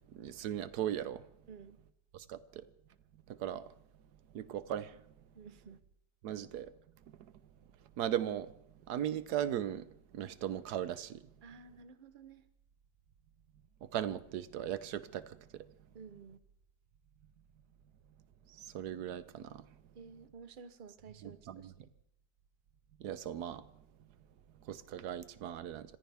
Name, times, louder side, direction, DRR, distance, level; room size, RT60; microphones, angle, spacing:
voice 1, 0.1-1.2 2.1-2.4 3.4-3.6 4.3-4.9 6.2-6.7 8.0-8.5 8.9-9.8 10.1-11.2 13.9-15.2 18.7-19.6 21.2-21.7 23.0-23.6 24.7-25.8, right 10 dB, 70° right, 15 dB, 1.3 m, -37 dB
voice 2, 1.5-1.8 5.3-5.8 11.4-12.5 15.9-16.4 19.9-21.9, right 5 dB, 45° right, 12 dB, 0.7 m, -53 dB
26.5 x 15.0 x 3.5 m, 0.73 s
omnidirectional pair, 1.9 m